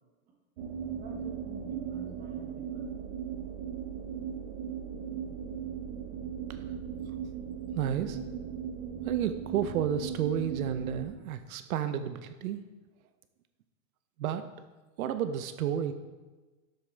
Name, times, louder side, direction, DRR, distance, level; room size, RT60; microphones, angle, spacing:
sound 1, 0.6-11.1, right 8 dB, 50° right, 1.2 m, -38 dB
voice 1, 0.9-3.1, right 3 dB, 20° right, 0 dB, 1.5 m, -47 dB
voice 2, 7.7-8.2 9.0-12.6 14.2-14.4 15.0-15.9, right 9 dB, 85° right, 10 dB, 0.8 m, -31 dB
12.5 x 7.1 x 3.3 m, 1.2 s
supercardioid pair, 160°, 42 cm